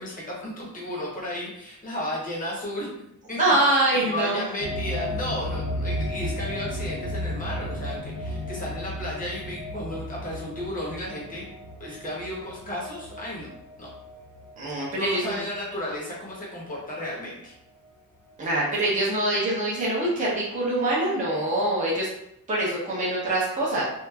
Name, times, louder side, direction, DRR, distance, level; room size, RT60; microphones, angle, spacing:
voice 1, 0.0-2.9 3.3-11.5 11.8-13.5 13.8-13.9 14.9-17.5, left 1 dB, 25° left, -5 dB, 0.8 m, -34 dB
voice 2, 3.4-4.4 14.6-15.4 18.4-22.1 22.5-23.9, right 1 dB, 20° right, -7 dB, 0.7 m, -24 dB
sound 1, 4.6-15.5 15.9-16.0 17.8-17.9, left 1 dB, 85° left, 1.0 m, -34 dB
2.9 x 2.5 x 2.3 m, 0.80 s
wide cardioid pair, 180°, 36 cm